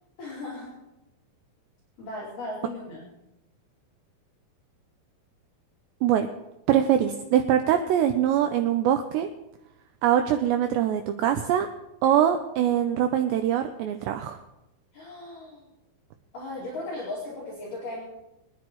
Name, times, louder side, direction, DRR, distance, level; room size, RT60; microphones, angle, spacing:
voice 1, 0.2-0.8 2.0-3.1 14.9-15.7 16.3-18.0, left 2 dB, 45° left, -8 dB, 3.7 m, -37 dB
voice 2, 6.7-9.3 10.0-11.7 12.0-14.4, right 10 dB, 85° right, 7 dB, 2.5 m, -23 dB
24.0 x 10.5 x 3.1 m, 0.93 s
omnidirectional pair, 5.7 m